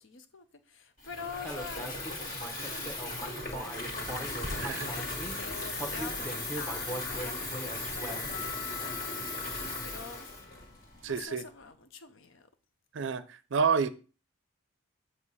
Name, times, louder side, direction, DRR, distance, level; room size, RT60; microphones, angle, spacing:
voice 1, 0.0-3.1 3.5-10.3 11.1-12.5, left 5 dB, 65° left, 0.7 m, -46 dB
Water tap faucet / Fill (with liquid), 1.0-11.3, left 2 dB, 45° left, 1.9 m, -37 dB
Human voice, 1.4-5.3 5.8-8.5, right 1 dB, 5° left, 0.8 m, -40 dB
voice 2, 4.5-4.9 11.0-11.4 12.9-13.9, right 6 dB, 60° right, 0.5 m, -29 dB
sound 1, 7.3-11.7, left 14 dB, 25° left, 1.2 m, -47 dB
8.0 x 2.8 x 5.4 m
head